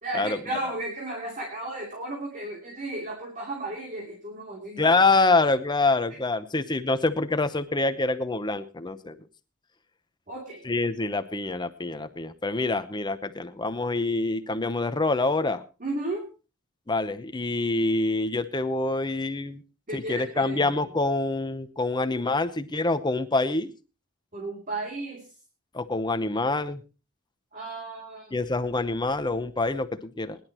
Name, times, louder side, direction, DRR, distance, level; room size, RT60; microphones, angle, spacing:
voice 1, 0.0-4.9 10.3-10.6 15.8-16.3 19.9-20.7 24.3-25.3 27.5-28.4, right 2 dB, 35° right, -1 dB, 3.0 m, -34 dB
voice 2, 4.8-9.1 10.6-15.6 16.9-19.6 19.9-23.7 25.7-26.8 28.3-30.4, left 3 dB, 20° left, 11 dB, 0.8 m, -26 dB
21.5 x 11.0 x 3.0 m, 0.31 s
head